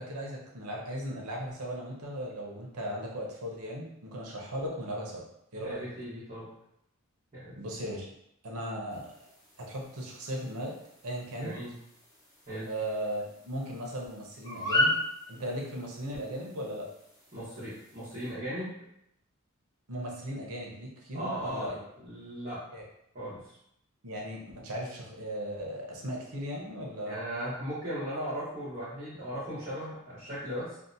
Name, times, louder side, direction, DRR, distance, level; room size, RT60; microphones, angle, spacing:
voice 1, 0.0-5.2 5.5-5.9 7.6-8.1 8.4-9.1 9.6-10.7 11.0-11.6 12.7-14.9 15.3-16.9 19.9-21.8 22.7-22.8 24.0-27.2, equal, 85° right, -2 dB, 0.7 m, -37 dB
voice 2, 5.6-6.5 7.3-7.5 11.4-11.7 12.5-12.7 17.3-18.7 21.1-22.6 23.1-23.6 27.0-30.8, equal, 35° right, -14 dB, 1.0 m, -37 dB
sound 1, 8.9-18.3, left 1 dB, 15° left, 0.8 m, -37 dB
2.7 x 2.1 x 2.6 m, 0.78 s
head